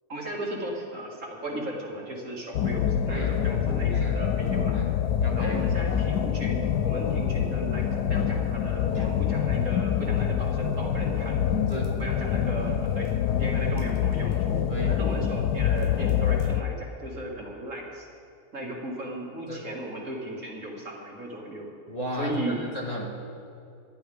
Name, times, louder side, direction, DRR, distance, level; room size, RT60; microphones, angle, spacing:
voice 1, 0.1-4.8 5.3-7.8 8.1-11.4 11.9-13.1 13.4-14.6 14.9-18.1 18.5-21.7 22.2-22.7, right 1 dB, 50° right, -3 dB, 2.5 m, -36 dB
sound 1, 2.5-16.6, left 8 dB, 85° left, 1.2 m, -26 dB
voice 2, 3.1-3.4 3.9-4.3 4.7-4.9 5.2-5.6 8.9-9.1 11.7-12.0 14.7-15.0 19.5-19.6 21.9-23.1, equal, 25° left, -4 dB, 2.0 m, -34 dB
24.5 x 11.0 x 3.5 m, 2.5 s
omnidirectional pair, 1.7 m